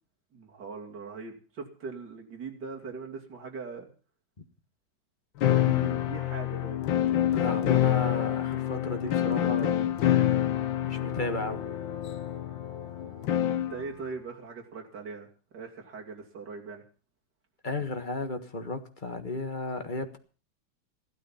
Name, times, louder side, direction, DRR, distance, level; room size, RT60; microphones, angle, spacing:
voice 1, 0.3-3.9 5.4-6.9 9.0-9.8 13.5-15.3 15.5-16.8, right 5 dB, 60° right, 1 dB, 3.3 m, -41 dB
sound 1, 5.4-13.8, left 12 dB, 75° left, 1.7 m, -27 dB
voice 2, 7.3-9.8 10.8-11.7 17.6-20.2, left 2 dB, 25° left, 7 dB, 1.5 m, -34 dB
Wind instrument woodwind instrument, 9.8-14.9, right 4 dB, 35° right, 6.0 m, -56 dB
15.5 x 12.5 x 5.7 m, 0.38 s
omnidirectional pair, 2.1 m